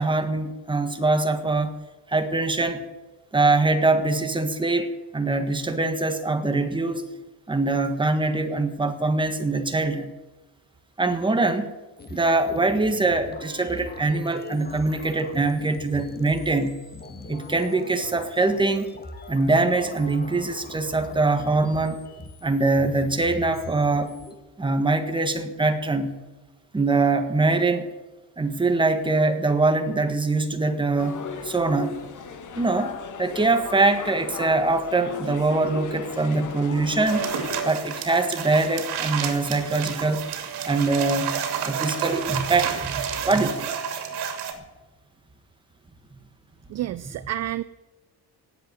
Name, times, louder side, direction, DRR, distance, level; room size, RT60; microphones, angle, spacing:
voice 1, 0.0-1.8 2.1-2.8 3.3-7.0 7.5-10.1 11.0-11.7 12.1-16.8 17.3-18.9 19.3-22.0 22.4-24.2 24.6-26.1 26.7-27.9 28.4-32.0 32.6-37.3 37.6-40.2 40.6-41.3 41.6-43.7, right 3 dB, 10° right, 7 dB, 1.5 m, -23 dB
sound 1, 12.0-24.3, left 3 dB, 25° left, 1.6 m, -42 dB
sound 2, 31.0-37.7, left 6 dB, 50° left, 2.0 m, -36 dB
sound 3, 37.1-44.5, right 8 dB, 80° right, 2.9 m, -30 dB
voice 2, 46.7-47.6, right 13 dB, 45° right, 16 dB, 0.5 m, -29 dB
18.5 x 8.0 x 8.0 m, 1.2 s
cardioid pair, 140°, 39 cm